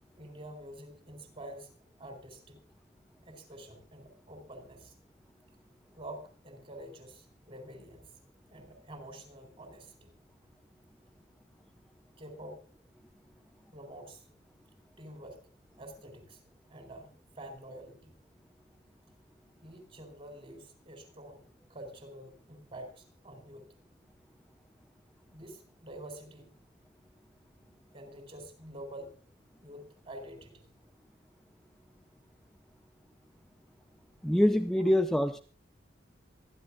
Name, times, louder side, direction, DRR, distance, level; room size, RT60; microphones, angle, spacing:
voice 1, 0.1-1.7 2.0-2.6 3.2-4.9 5.9-8.2 8.5-10.1 12.2-12.7 13.7-14.2 15.0-15.4 15.8-16.4 16.7-18.2 19.6-21.4 21.7-23.7 25.3-26.5 27.9-29.1 29.6-30.7 34.7-34.9, right 1 dB, 30° right, 7 dB, 4.3 m, -47 dB
voice 2, 34.2-35.4, left 1 dB, ahead, 6 dB, 0.6 m, -25 dB
26.5 x 11.5 x 2.4 m, 0.38 s
head